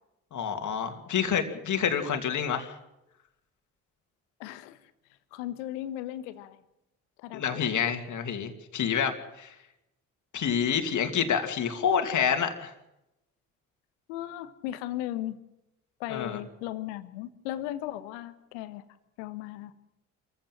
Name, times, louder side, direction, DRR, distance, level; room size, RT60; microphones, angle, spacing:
voice 1, 0.3-2.8 7.3-9.5 10.3-12.7 16.1-16.4, left 7 dB, 50° left, 6 dB, 2.6 m, -28 dB
voice 2, 4.4-4.8 5.3-6.6 7.2-7.9 14.1-15.4 16.0-18.8 19.2-19.7, left 13 dB, 70° left, 12 dB, 1.4 m, -37 dB
26.5 x 15.0 x 7.6 m, 0.90 s
figure-of-eight pair, 45°, 38 cm